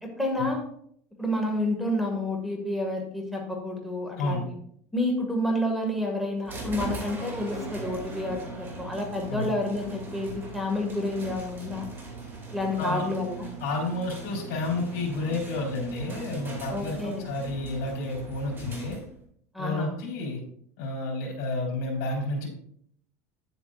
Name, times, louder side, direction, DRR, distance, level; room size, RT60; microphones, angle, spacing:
voice 1, 0.0-0.6 1.2-4.4 4.9-11.9 12.5-13.5 16.7-17.3 19.5-19.9, left 1 dB, ahead, 1 dB, 2.0 m, -29 dB
sound 1, 6.5-19.3, right 3 dB, 25° right, 2.5 m, -39 dB
voice 2, 13.6-19.0 19.6-20.4 20.8-22.5, left 2 dB, 60° left, -3 dB, 3.5 m, -30 dB
9.6 x 8.1 x 2.5 m, 0.66 s
supercardioid pair, 110°, 8 cm